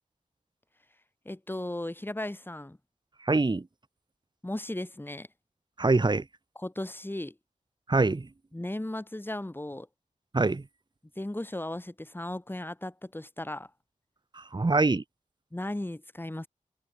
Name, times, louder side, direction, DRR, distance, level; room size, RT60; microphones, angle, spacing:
voice 1, 1.2-2.8 4.4-5.3 6.5-7.3 8.5-9.9 11.2-13.7 15.5-16.5, left 1 dB, 15° left, 3.0 m, -36 dB
voice 2, 3.2-3.6 5.8-6.2 7.9-8.3 10.3-10.6 14.4-15.0, right 3 dB, 35° right, 1.5 m, -24 dB
cardioid pair, 55°, 14 cm